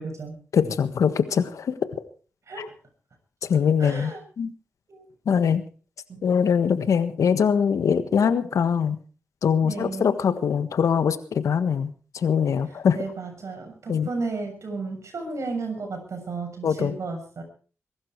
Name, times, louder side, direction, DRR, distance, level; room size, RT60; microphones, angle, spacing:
voice 1, 0.0-0.4 2.5-2.7 3.8-4.2 4.9-5.0 6.1-6.2 9.6-10.1 12.9-17.4, right 3 dB, 65° right, 4 dB, 7.0 m, -33 dB
voice 2, 0.5-1.9 2.6-2.7 3.5-4.5 5.2-5.6 6.2-9.0 9.4-13.0 13.9-14.1 16.6-16.9, left 7 dB, 85° left, 11 dB, 1.5 m, -22 dB
22.5 x 12.0 x 4.7 m, 0.40 s
cardioid pair, 50°, 5 cm